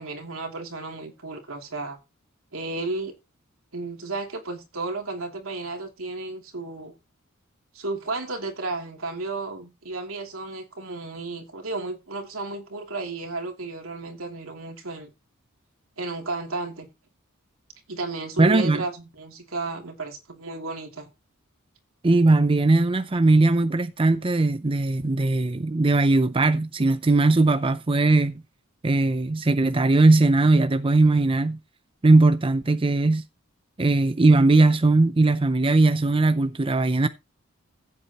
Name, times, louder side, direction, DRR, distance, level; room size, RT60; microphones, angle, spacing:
voice 1, 0.0-2.0 2.5-3.1 3.7-6.9 7.7-15.1 16.0-16.9 17.9-21.1, right 3 dB, 80° right, 2.9 m, -33 dB
voice 2, 18.4-18.8 22.0-28.3 28.8-31.6 32.0-33.2 33.8-37.1, right 2 dB, 25° right, 0.5 m, -19 dB
15.5 x 8.3 x 2.9 m
head